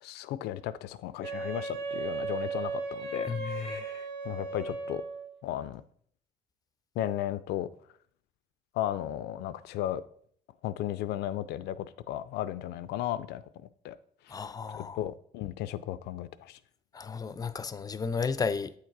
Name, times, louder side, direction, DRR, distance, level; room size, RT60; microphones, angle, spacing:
voice 1, 0.0-5.0 5.4-5.8 7.0-7.7 8.7-10.0 10.6-13.4 13.8-14.0 14.3-14.4 14.7-16.6, left 12 dB, 80° left, 0.5 m, -35 dB
Wind instrument woodwind instrument, 1.2-5.3, right 4 dB, 80° right, 1.2 m, -36 dB
voice 2, 3.3-3.9 14.3-15.0 16.9-18.7, left 5 dB, 20° left, 0.4 m, -33 dB
8.3 x 3.8 x 4.6 m
cardioid pair, 110°, 17 cm